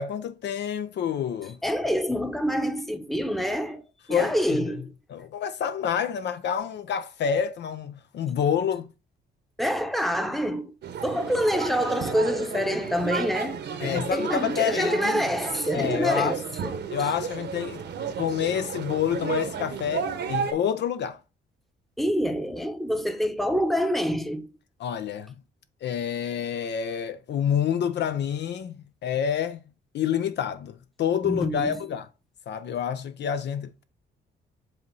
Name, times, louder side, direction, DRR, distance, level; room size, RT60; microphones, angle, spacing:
voice 1, 0.0-1.6 4.1-4.7 5.1-8.9 13.8-15.2 15.7-16.4 16.9-17.8 18.2-21.2 24.8-25.4 25.8-29.6 29.9-32.1 32.5-33.8, left 8 dB, 60° left, 0.6 m, -28 dB
voice 2, 1.6-4.9 9.6-10.7 11.0-16.8 22.0-24.5 31.2-31.8, equal, ahead, 0.9 m, -27 dB
sound 1, 10.8-20.5, right 7 dB, 60° right, 1.0 m, -33 dB
7.9 x 2.8 x 4.6 m
cardioid pair, 90°, 20 cm